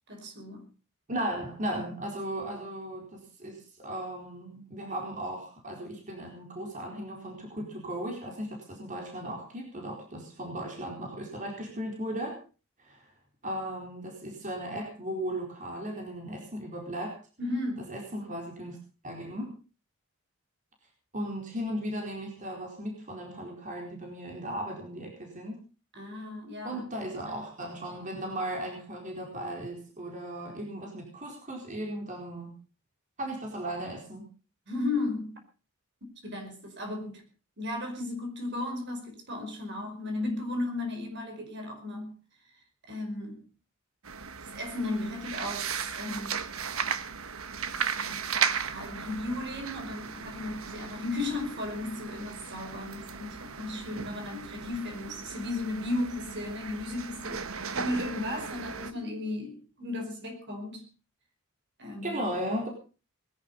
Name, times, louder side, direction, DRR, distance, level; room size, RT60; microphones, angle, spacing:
voice 1, 0.1-0.6 17.4-17.9 25.9-26.8 34.7-35.4 36.2-37.2 37.6-42.2 42.9-43.4 44.4-46.5 47.8-48.4 48.7-60.9 61.8-62.2, left 2 dB, 55° right, 4 dB, 5.1 m, -35 dB
voice 2, 1.1-12.4 12.8-13.0 13.4-17.2 17.9-18.8 19.0-19.5 21.1-25.6 26.6-32.5 33.2-34.3 62.0-62.7, right 1 dB, 35° right, 1 dB, 4.4 m, -36 dB
sound 1, 44.0-58.9, right 6 dB, 80° right, 1.3 m, -36 dB
20.5 x 11.5 x 5.4 m, 0.36 s
head